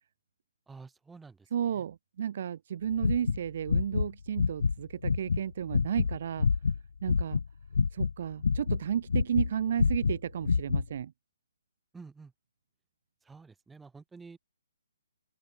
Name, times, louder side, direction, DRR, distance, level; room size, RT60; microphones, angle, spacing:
voice 1, 0.7-1.8 11.9-12.3 13.2-14.4, right 4 dB, 5° right, 6.1 m, -50 dB
voice 2, 1.5-6.5 7.0-7.4 7.9-11.1, right 9 dB, 45° right, 2.3 m, -33 dB
sound 1, 2.9-4.1 4.4-4.8 5.0-7.5 7.7-9.5 9.8-10.9, left 5 dB, 80° left, 0.6 m, -27 dB
open air
hypercardioid pair, 165°, 0 cm